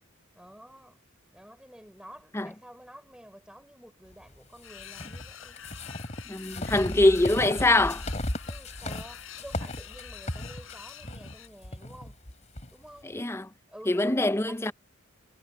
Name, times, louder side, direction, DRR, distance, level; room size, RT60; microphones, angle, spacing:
voice 1, 0.3-1.0 1.3-5.6 8.5-12.2 12.7-13.1 13.7-14.7, equal, 5° right, 4.7 m, -50 dB
sound 1, 4.6-11.5, left 10 dB, 75° left, 4.2 m, -47 dB
sound 2, 4.8-12.7, left 1 dB, 35° left, 3.5 m, -36 dB
voice 2, 6.3-8.0 13.1-13.5 13.9-14.7, left 2 dB, 10° left, 0.6 m, -23 dB
head